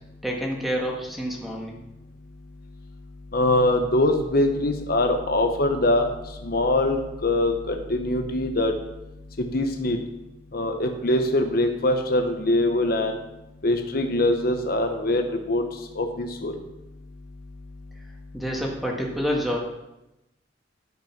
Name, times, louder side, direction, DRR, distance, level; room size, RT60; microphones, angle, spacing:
voice 1, 0.2-1.8 18.3-19.6, equal, ahead, -1 dB, 1.7 m, -28 dB
voice 2, 3.3-6.1 6.4-8.7 9.4-10.0 10.5-13.2 13.6-15.7 15.9-16.5, left 1 dB, 50° left, 5 dB, 0.9 m, -23 dB
12.5 x 5.4 x 5.9 m, 0.94 s
head